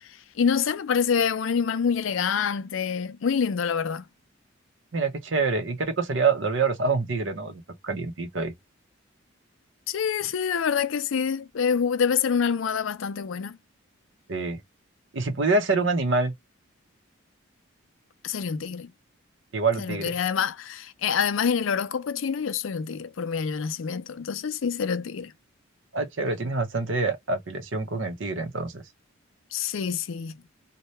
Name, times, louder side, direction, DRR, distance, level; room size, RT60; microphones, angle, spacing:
voice 1, 0.4-4.0 9.9-13.6 18.2-18.9 19.8-25.3 29.5-30.3, left 6 dB, 70° left, 0.4 m, -26 dB
voice 2, 4.9-8.5 14.3-14.6 15.1-16.3 19.5-20.1 25.9-28.8, right 3 dB, 65° right, 0.8 m, -26 dB
2.8 x 2.2 x 3.1 m
head